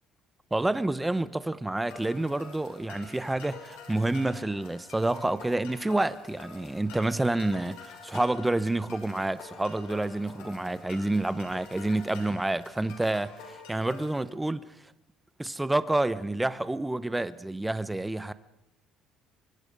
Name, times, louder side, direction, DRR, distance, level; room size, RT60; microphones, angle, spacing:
voice 1, 0.5-14.7 15.4-18.3, right 2 dB, 5° right, 0.8 m, -28 dB
sound 1, 1.9-14.2, left 5 dB, 85° left, 6.2 m, -48 dB
25.0 x 24.0 x 5.2 m
cardioid pair, 155°, 0 cm